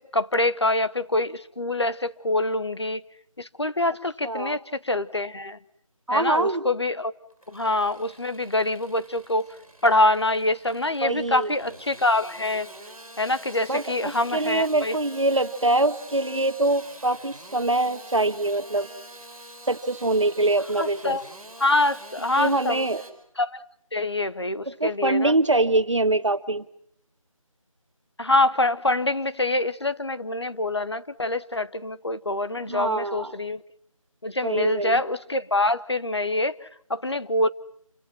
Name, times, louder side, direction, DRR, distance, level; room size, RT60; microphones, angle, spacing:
voice 1, 0.0-3.0 3.4-5.6 6.1-7.1 7.5-9.5 9.8-12.7 13.2-15.0 20.8-21.3 21.6-22.9 23.4-23.6 23.9-25.3 28.2-33.6 34.2-37.5, left 2 dB, 50° left, 0.9 m, -25 dB
voice 2, 4.2-4.6 6.1-6.6 11.0-11.5 13.7-18.9 19.7-21.2 22.4-23.0 24.7-26.6 32.7-33.3 34.4-35.0, right 2 dB, 60° right, 1.4 m, -24 dB
Engine starting / Sawing, 7.3-23.1, right 1 dB, 5° left, 1.7 m, -46 dB
28.0 x 25.0 x 6.0 m
figure-of-eight pair, 180°, 18 cm